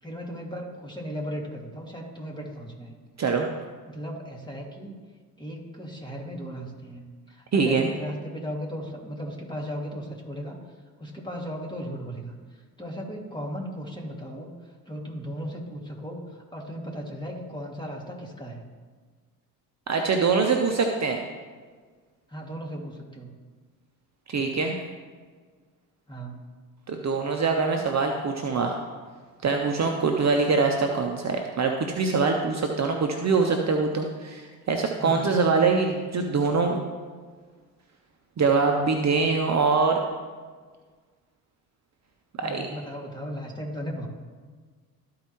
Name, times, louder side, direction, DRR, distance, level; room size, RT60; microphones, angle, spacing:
voice 1, 0.0-2.9 3.9-5.0 5.4-10.6 11.0-18.6 22.3-23.3 26.1-26.5 35.0-35.4 42.4-44.1, equal, 10° left, -1 dB, 2.3 m, -36 dB
voice 2, 7.5-7.9 19.9-21.2 24.3-24.7 26.9-28.8 29.4-36.8 38.4-40.0 42.4-42.7, right 4 dB, 35° right, 3 dB, 1.0 m, -24 dB
13.5 x 4.8 x 3.1 m, 1.5 s
hypercardioid pair, 55°, 46 cm